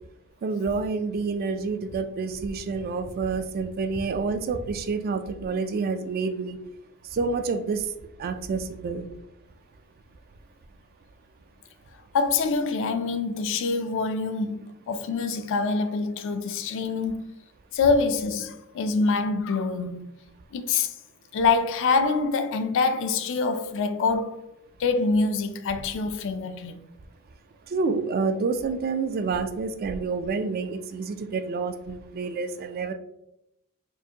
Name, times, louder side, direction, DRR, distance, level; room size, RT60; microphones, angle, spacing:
voice 1, 0.4-6.6 7.0-7.9 8.2-9.1 27.7-32.9, right 4 dB, 45° right, 0.3 m, -28 dB
voice 2, 12.1-17.2 17.7-20.1 20.5-20.9 21.3-24.5 24.8-26.8, left 4 dB, 60° left, 0.4 m, -25 dB
4.5 x 2.5 x 2.8 m
head